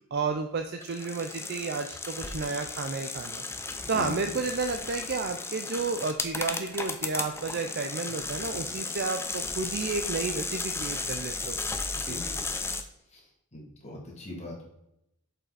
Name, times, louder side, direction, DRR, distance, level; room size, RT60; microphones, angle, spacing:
voice 1, 0.1-3.4 3.9-11.6 12.0-12.2, right 4 dB, 50° right, 6 dB, 0.5 m, -32 dB
sound 1, 0.8-12.8, left 3 dB, 10° left, 0.4 m, -35 dB
voice 2, 3.9-4.3 12.1-12.4 13.1-14.7, left 2 dB, 30° left, -2 dB, 2.2 m, -41 dB
7.4 x 5.5 x 4.0 m, 0.81 s
head